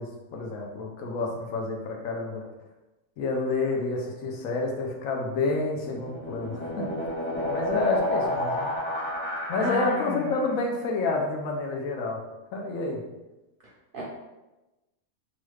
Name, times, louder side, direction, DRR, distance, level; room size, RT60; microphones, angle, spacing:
voice 1, 0.0-2.4 3.2-8.7 9.5-12.2 12.5-13.0, left 3 dB, 75° left, 1 dB, 1.0 m, -29 dB
sound 1, 5.7-10.4, left 1 dB, 10° left, 0.6 m, -30 dB
voice 2, 9.6-10.4 13.9-14.0, left 1 dB, 55° right, -5 dB, 0.6 m, -32 dB
3.1 x 2.3 x 3.1 m, 1.0 s
omnidirectional pair, 1.5 m